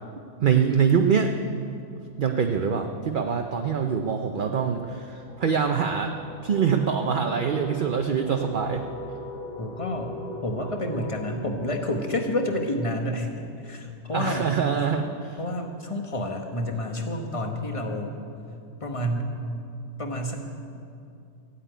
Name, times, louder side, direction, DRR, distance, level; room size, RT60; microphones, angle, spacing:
voice 1, 0.4-1.3 2.2-6.1 6.4-8.8 14.1-15.4, right 6 dB, 50° right, 4 dB, 0.7 m, -24 dB
sound 1, 1.9-13.4, equal, 25° right, 1.6 m, -42 dB
voice 2, 9.6-13.3 13.6-14.5 15.4-18.2 18.8-19.3 20.0-20.4, left 1 dB, 25° left, 3 dB, 1.3 m, -29 dB
14.5 x 8.4 x 9.2 m, 2.5 s
omnidirectional pair, 1.4 m